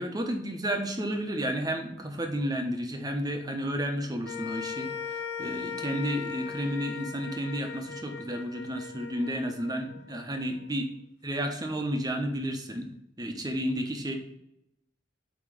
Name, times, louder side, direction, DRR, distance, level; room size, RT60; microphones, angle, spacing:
voice 1, 0.0-10.9 11.2-12.9 13.2-14.2, equal, 20° right, 4 dB, 1.0 m, -32 dB
sound 1, 4.2-10.7, left 6 dB, 70° left, 0.7 m, -39 dB
8.9 x 3.2 x 4.8 m, 0.82 s
head